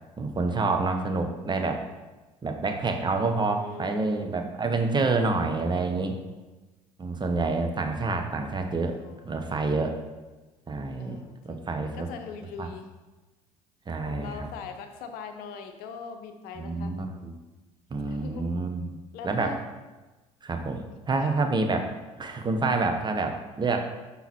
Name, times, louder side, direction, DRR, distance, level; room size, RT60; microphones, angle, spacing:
voice 1, 0.2-1.8 2.4-6.2 7.0-8.9 9.2-10.0 10.7-11.2 11.4-12.1 12.6-12.7 13.9-14.5 16.6-17.3 17.9-19.0 19.2-19.5 20.4-21.8 22.2-23.8, right 3 dB, 25° right, 4 dB, 0.9 m, -28 dB
voice 2, 3.6-4.4 5.9-6.4 8.9-9.7 11.0-12.9 14.0-16.9 18.1-18.6 19.1-19.6 21.2-21.4, left 6 dB, 60° left, 6 dB, 0.8 m, -42 dB
6.0 x 5.7 x 4.3 m, 1.2 s
hypercardioid pair, 60°, 17 cm